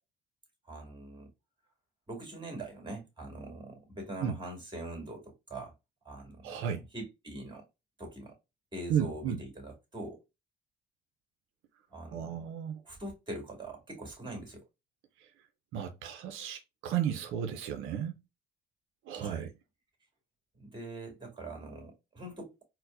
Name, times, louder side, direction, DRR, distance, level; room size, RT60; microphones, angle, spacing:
voice 1, 0.7-1.3 2.1-5.7 6.0-7.6 8.0-8.3 8.7-10.2 11.9-12.5 12.8-14.6 19.1-19.5 20.5-22.6, right 1 dB, 25° right, 2.0 m, -43 dB
voice 2, 6.4-6.8 8.9-9.4 12.1-12.8 15.7-18.1 19.1-19.5, right 9 dB, 85° right, 0.5 m, -33 dB
4.4 x 2.0 x 2.4 m
cardioid pair, 90°, 20 cm